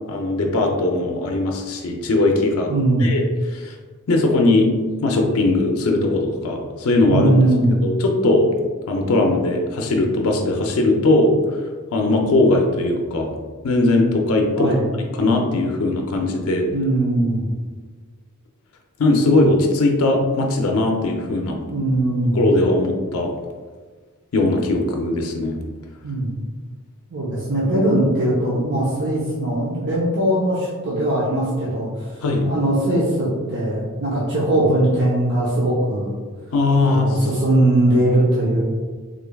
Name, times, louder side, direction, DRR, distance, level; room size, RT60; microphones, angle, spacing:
voice 1, 0.1-2.7 3.0-3.2 3.5-3.7 4.1-4.7 5.0-7.3 7.8-8.5 8.9-11.6 11.9-13.3 13.6-14.7 15.2-16.7 19.0-21.6 22.3-23.3 24.3-25.6 32.2-32.5 36.5-37.3, left 2 dB, 75° left, 2 dB, 0.5 m, -19 dB
voice 2, 2.7-3.1 7.1-7.8 14.6-14.9 16.7-17.5 21.7-22.6 26.0-26.3 27.1-32.1 32.4-36.1 36.8-38.6, right 1 dB, 55° right, -7 dB, 0.7 m, -20 dB
3.7 x 3.3 x 2.2 m, 1.5 s
head